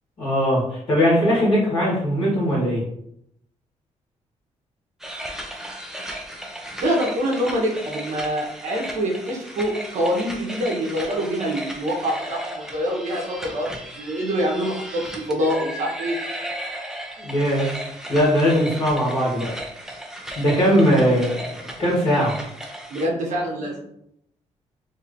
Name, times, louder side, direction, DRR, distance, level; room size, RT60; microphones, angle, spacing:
voice 1, 0.2-2.8 17.2-19.5 20.4-22.4, equal, 45° left, -7 dB, 1.3 m, -20 dB
sound 1, 5.0-23.1, right 1 dB, 5° right, 0.5 m, -35 dB
voice 2, 6.8-15.0 15.3-16.1 22.9-23.8, equal, 70° right, -2 dB, 0.9 m, -25 dB
3.0 x 2.7 x 2.5 m, 0.75 s
cardioid pair, 95°, 13 cm